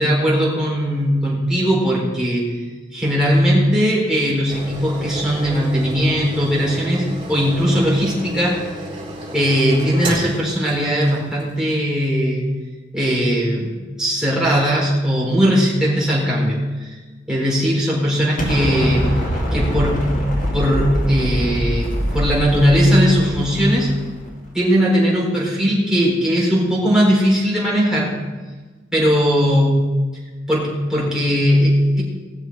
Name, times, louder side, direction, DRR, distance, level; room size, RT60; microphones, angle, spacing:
voice 1, 0.0-2.6 2.9-8.6 9.3-12.5 12.9-17.0 17.3-19.1 19.5-20.2 20.5-23.9 24.5-28.2 28.9-29.7 30.5-32.0, equal, 5° right, -6 dB, 4.2 m, -18 dB
sound 1, 4.5-11.5 12.0-12.1, equal, 30° right, 3.9 m, -31 dB
Explosion, 18.4-24.4, equal, 45° left, 2.1 m, -24 dB
20.5 x 7.0 x 4.8 m, 1.3 s
head